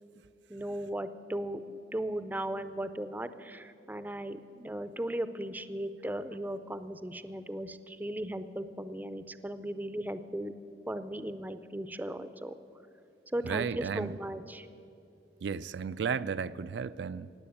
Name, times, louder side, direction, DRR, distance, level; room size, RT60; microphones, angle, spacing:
voice 1, 0.5-10.5 10.9-12.5 13.3-14.7, right 1 dB, 10° right, 0.5 m, -37 dB
voice 2, 13.4-14.2 15.4-17.3, right 6 dB, 80° right, 0.4 m, -34 dB
19.0 x 7.8 x 8.5 m
head